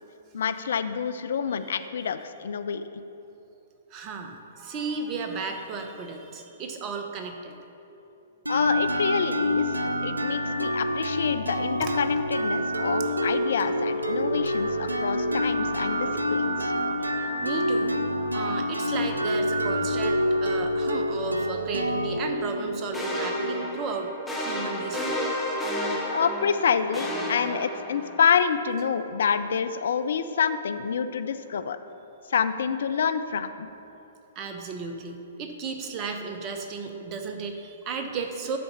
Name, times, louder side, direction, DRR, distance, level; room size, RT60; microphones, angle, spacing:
voice 1, 0.3-2.9 8.5-16.7 26.1-31.8 32.3-33.7, left 6 dB, 60° left, 11 dB, 0.4 m, -27 dB
voice 2, 3.9-7.6 11.8-12.0 17.2-18.0 18.3-25.2 34.3-38.6, right 4 dB, 30° right, 5 dB, 0.9 m, -34 dB
sound 1, 8.4-24.1, equal, 90° right, 0.5 m, -27 dB
sound 2, 22.9-28.3, equal, ahead, 1.2 m, -31 dB
11.0 x 4.1 x 5.6 m, 2.8 s
figure-of-eight pair, 115°, 0 cm